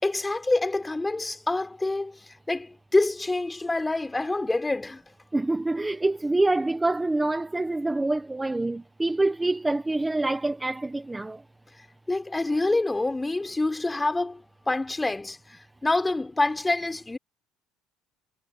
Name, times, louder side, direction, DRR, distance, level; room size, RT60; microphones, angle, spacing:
voice 1, 0.0-2.1 2.5-5.0 12.1-14.4 14.7-17.2, left 2 dB, 10° left, 4.4 m, -26 dB
voice 2, 5.3-11.4, right 2 dB, 10° right, 1.3 m, -26 dB
cardioid pair, 125°, 0 cm